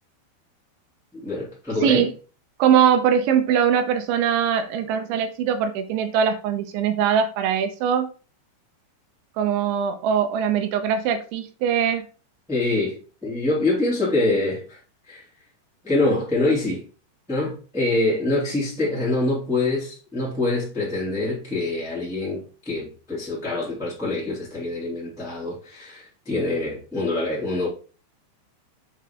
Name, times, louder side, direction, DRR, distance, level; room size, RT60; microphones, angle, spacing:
voice 1, 1.1-2.1 12.5-14.8 15.1-15.2 15.8-16.8 17.3-27.7, left 2 dB, 5° right, 0.6 m, -25 dB
voice 2, 1.8-2.1 2.6-8.1 9.4-12.1, right 8 dB, 85° right, 2.9 m, -21 dB
7.6 x 4.2 x 3.6 m
omnidirectional pair, 5.6 m